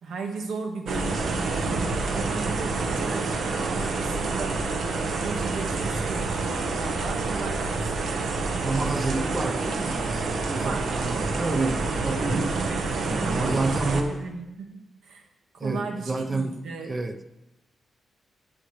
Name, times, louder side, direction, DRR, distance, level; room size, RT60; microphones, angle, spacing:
voice 1, 0.0-1.8 2.1-4.6 5.1-7.8 10.6-10.9 11.3-11.5 11.8-12.0 12.6-13.5 14.1-15.3 15.5-17.0, right 4 dB, 90° right, 3 dB, 1.7 m, -36 dB
sound 1, 0.9-14.0, right 3 dB, 65° right, 1.2 m, -28 dB
voice 2, 8.6-12.3 13.1-14.2 15.6-16.6 16.8-17.2, right 2 dB, 15° right, 8 dB, 0.7 m, -29 dB
17.0 x 7.9 x 3.2 m, 0.94 s
wide cardioid pair, 170°, 0 cm